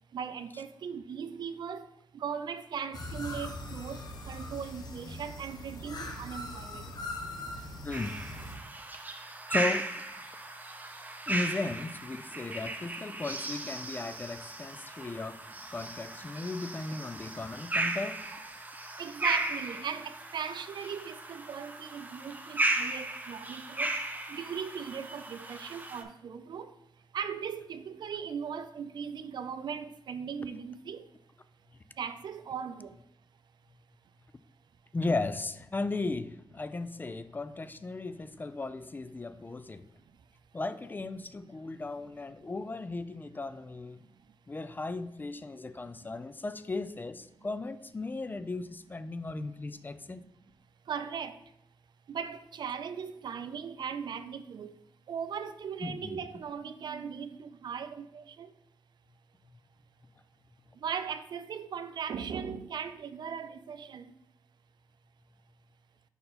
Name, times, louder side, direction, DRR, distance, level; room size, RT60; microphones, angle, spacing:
voice 1, 0.1-1.9 2.1-6.8 19.0-23.9 24.3-26.7 27.1-31.1 32.0-32.9 50.9-51.4 52.1-54.7 55.1-58.5 60.8-64.1, right 7 dB, 65° right, 0.4 m, -38 dB
sound 1, 2.9-8.6, left 1 dB, 55° left, 1.1 m, -41 dB
voice 2, 7.8-8.2 9.5-9.9 11.3-15.4 15.7-18.2 34.9-39.8 40.5-44.0 44.5-50.2 55.8-56.2, left 3 dB, 25° left, 0.3 m, -36 dB
sound 2, 7.9-26.0, right 2 dB, 20° right, 0.7 m, -36 dB
5.3 x 4.3 x 4.2 m
cardioid pair, 80°, 8 cm